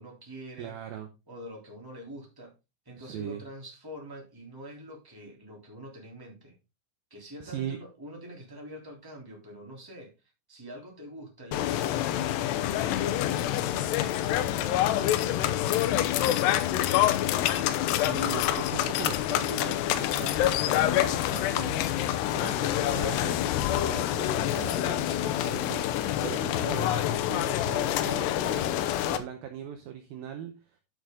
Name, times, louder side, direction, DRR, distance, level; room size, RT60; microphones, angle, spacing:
voice 1, 0.0-0.8 1.3-2.5 2.8-6.6 7.1-10.1 10.5-14.9 15.6-17.2 24.4-24.6 25.0-25.6, equal, 5° right, -1 dB, 2.5 m, -46 dB
voice 2, 0.6-1.1 3.0-3.4 7.4-7.8 17.8-21.8 22.3-25.1 25.4-25.9 26.2-30.8, right 9 dB, 80° right, 6 dB, 2.2 m, -40 dB
sound 1, 11.5-29.2, left 12 dB, 75° left, 2.7 m, -27 dB
11.0 x 6.4 x 3.8 m, 0.27 s
omnidirectional pair, 5.2 m